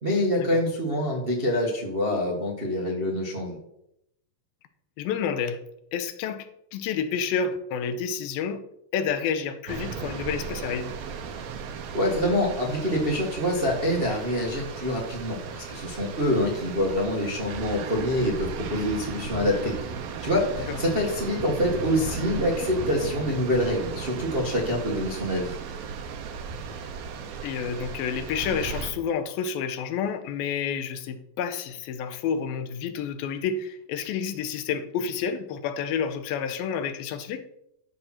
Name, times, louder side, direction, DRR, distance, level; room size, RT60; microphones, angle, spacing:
voice 1, 0.0-3.6 11.9-19.8 20.2-25.6, left 1 dB, 75° right, -3 dB, 0.5 m, -26 dB
voice 2, 5.0-5.6 5.9-6.5 6.7-8.6 8.9-10.9 20.7-20.8 27.4-37.4, left 7 dB, 90° left, 10 dB, 2.6 m, -29 dB
sound 1, 9.7-28.9, right 6 dB, 90° right, 3.0 m, -36 dB
12.5 x 6.2 x 4.3 m, 0.79 s
omnidirectional pair, 4.2 m